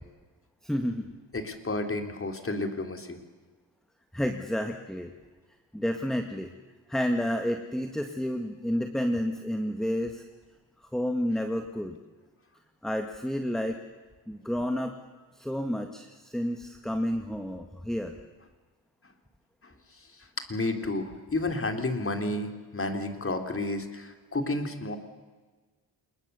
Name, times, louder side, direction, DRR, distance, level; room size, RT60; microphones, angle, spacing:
voice 1, 0.6-1.2 4.1-5.1 5.7-6.5 6.9-10.2 10.9-12.0 12.8-13.8 14.3-14.9 15.4-18.2, equal, ahead, 5 dB, 1.8 m, -30 dB
voice 2, 1.3-3.2 19.6-19.7 20.0-20.1 20.4-25.0, left 2 dB, 30° left, 5 dB, 3.6 m, -31 dB
27.5 x 21.0 x 7.0 m, 1.3 s
cardioid pair, 70°, 41 cm